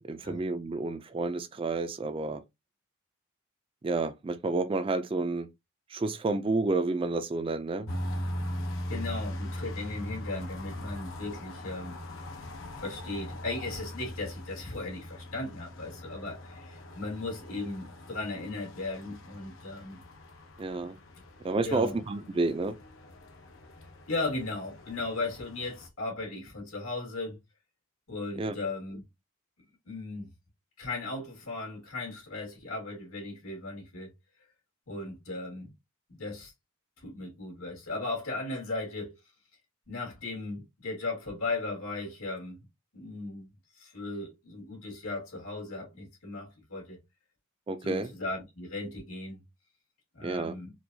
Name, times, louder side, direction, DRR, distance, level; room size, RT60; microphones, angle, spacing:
voice 1, 0.1-2.4 3.8-5.5 5.9-7.9 20.6-21.0 21.4-22.7 28.4-28.5 47.7-48.1 50.2-50.6, right 3 dB, 25° right, 0.3 m, -30 dB
sound 1, 7.9-25.9, left 1 dB, 70° left, 0.8 m, -41 dB
voice 2, 8.9-12.0 12.8-20.0 21.6-22.0 24.1-27.4 28.1-29.0 29.9-30.3 30.8-34.1 34.9-35.7 36.1-36.5 37.0-39.2 39.9-42.6 42.9-43.5 43.8-47.0 47.8-49.4 50.1-50.7, left 2 dB, 90° left, 2.1 m, -37 dB
4.4 x 2.3 x 2.7 m
head